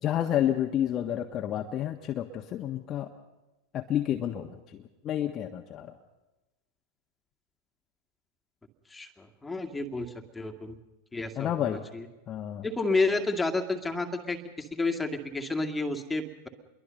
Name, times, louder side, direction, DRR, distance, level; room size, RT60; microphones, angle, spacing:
voice 1, 0.0-3.1 3.7-5.9 11.3-11.8 12.3-12.7, left 11 dB, 30° left, 3 dB, 1.5 m, -30 dB
voice 2, 8.9-10.8 11.1-12.1 12.6-16.5, left 3 dB, 10° left, 3 dB, 2.4 m, -31 dB
28.0 x 22.5 x 5.5 m, 1.0 s
figure-of-eight pair, 90°, 0 cm